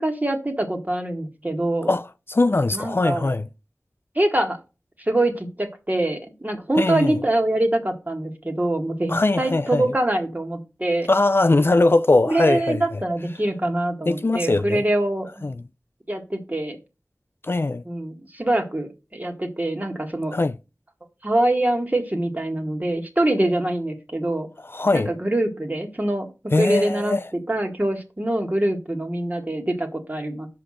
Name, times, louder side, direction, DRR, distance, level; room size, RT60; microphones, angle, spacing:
voice 1, 0.0-1.9 2.7-3.3 4.2-4.6 5.0-11.1 12.3-15.5 16.1-16.8 17.9-20.3 21.2-24.5 24.9-27.2 27.5-30.5, right 1 dB, 30° right, 1.9 m, -24 dB
voice 2, 1.9-3.5 6.8-7.2 9.1-9.8 11.1-13.0 14.1-14.8 15.4-15.6 17.4-17.8 20.3-20.6 24.7-25.1 26.5-27.2, left 2 dB, 45° left, 0.4 m, -21 dB
5.9 x 5.0 x 6.4 m
wide cardioid pair, 40°, 5 cm